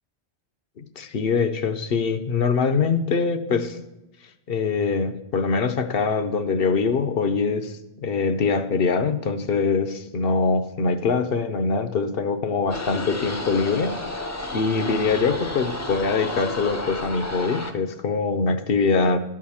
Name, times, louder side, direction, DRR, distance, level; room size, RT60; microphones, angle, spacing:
voice 1, 1.0-3.8 4.5-13.9 14.5-19.2, left 4 dB, 60° left, 10 dB, 0.9 m, -23 dB
sound 1, 12.7-17.7, left 1 dB, 20° left, 0.6 m, -31 dB
12.0 x 4.8 x 7.2 m, 0.96 s
omnidirectional pair, 1.2 m